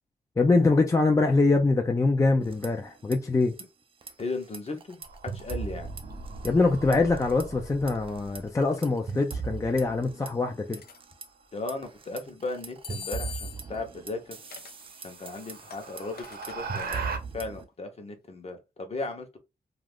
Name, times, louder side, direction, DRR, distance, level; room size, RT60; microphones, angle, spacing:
voice 1, 0.4-3.5 6.4-10.8, left 3 dB, 20° left, 0.4 m, -24 dB
sound 1, 2.4-3.2 3.4-3.6 4.0-6.7 6.9-7.4 7.9-11.3 11.7-17.6, right 5 dB, 35° right, 0.5 m, -39 dB
voice 2, 4.2-5.9 11.5-14.5 15.0-19.4, left 3 dB, 40° left, 0.8 m, -36 dB
sound 2, 5.0-8.5 10.8-11.3 13.4-13.5 14.0-14.1 14.6-17.2, right 4 dB, 80° right, 0.8 m, -40 dB
sound 3, 10.7-11.0 12.8-13.8 14.5-14.8 15.3-16.6, left 7 dB, 80° left, 0.5 m, -42 dB
2.4 x 2.3 x 3.4 m
wide cardioid pair, 110°, 16 cm